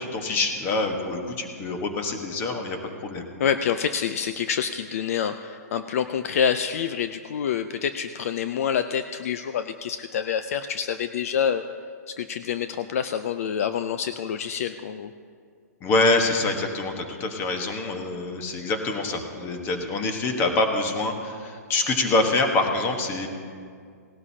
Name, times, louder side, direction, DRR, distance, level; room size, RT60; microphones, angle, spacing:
voice 1, 0.0-2.8 3.0-3.3 15.8-23.3, left 2 dB, 25° left, 4 dB, 1.3 m, -25 dB
voice 2, 3.4-11.6 12.2-15.1, left 8 dB, 55° left, 10 dB, 0.5 m, -27 dB
18.5 x 12.5 x 2.8 m, 2.2 s
hypercardioid pair, 145°, 9 cm